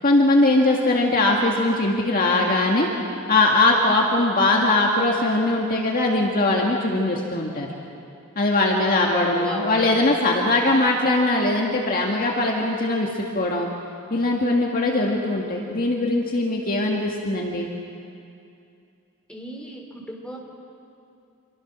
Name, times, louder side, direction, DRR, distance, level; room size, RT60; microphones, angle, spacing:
voice 1, 0.0-2.9 3.3-7.7 8.4-13.7 14.1-17.7, left 2 dB, 40° left, -1 dB, 1.9 m, -21 dB
voice 2, 8.9-9.9 19.3-20.4, equal, 5° left, -2 dB, 3.6 m, -34 dB
26.5 x 23.5 x 6.2 m, 2.6 s
head